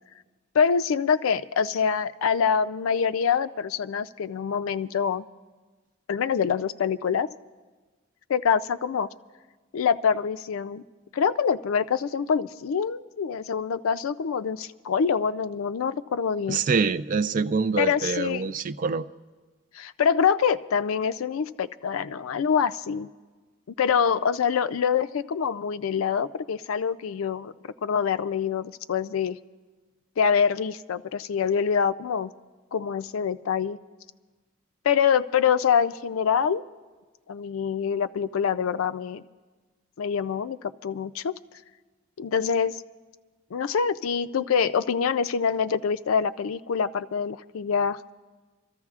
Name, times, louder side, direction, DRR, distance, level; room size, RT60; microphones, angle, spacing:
voice 1, 0.5-5.3 6.1-7.3 8.3-9.1 9.7-10.8 11.1-16.6 17.8-18.5 19.7-23.1 23.8-27.5 27.8-29.4 30.2-32.3 32.7-33.8 34.8-36.6 37.3-39.2 40.0-41.3 42.2-42.8 43.5-48.0, left 6 dB, 80° left, 14 dB, 0.4 m, -25 dB
voice 2, 16.5-19.1, right 4 dB, 40° right, 12 dB, 0.3 m, -25 dB
27.5 x 14.0 x 2.4 m, 1.3 s
head